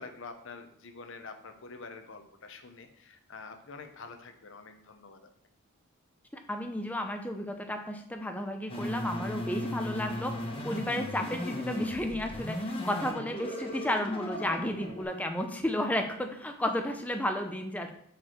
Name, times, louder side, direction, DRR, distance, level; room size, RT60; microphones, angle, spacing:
voice 1, 0.0-5.2 13.0-13.1, left 4 dB, 60° left, 6 dB, 0.8 m, -46 dB
voice 2, 6.5-17.9, left 1 dB, 5° left, 4 dB, 0.6 m, -33 dB
sound 1, 8.7-15.0, left 1 dB, 25° left, 1.0 m, -36 dB
6.7 x 4.7 x 4.4 m, 0.67 s
head